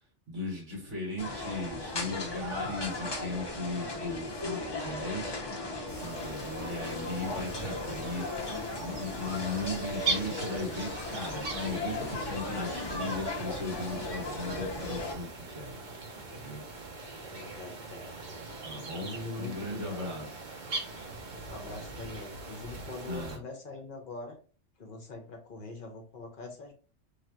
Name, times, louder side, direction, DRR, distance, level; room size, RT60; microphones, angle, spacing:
voice 1, 0.3-5.4 6.0-8.3 8.8-16.6 18.6-19.1 19.4-20.3 23.1-23.4, left 2 dB, 90° right, -3 dB, 1.7 m, -37 dB
sound 1, 1.2-15.1, left 2 dB, 35° left, 0.5 m, -37 dB
sound 2, 5.9-23.4, right 3 dB, 45° right, 0.7 m, -41 dB
voice 2, 17.2-18.1 19.0-20.1 21.5-24.4 24.8-26.7, left 2 dB, 55° left, 2 dB, 0.8 m, -43 dB
3.3 x 2.3 x 2.8 m, 0.38 s
omnidirectional pair, 1.2 m